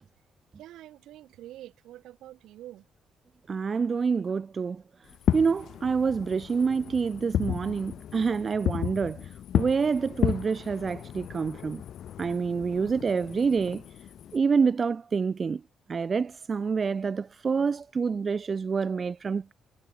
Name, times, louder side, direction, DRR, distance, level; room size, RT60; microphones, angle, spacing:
voice 1, 0.6-2.9, right 14 dB, 85° right, 3.3 m, -46 dB
voice 2, 3.5-4.8 5.3-9.3 9.5-11.8 12.2-13.8 14.3-15.6 15.9-19.5, right 5 dB, 40° right, 0.4 m, -27 dB
Fireworks, 5.1-14.4, left 10 dB, 70° left, 0.4 m, -33 dB
cardioid pair, 90°, 0 cm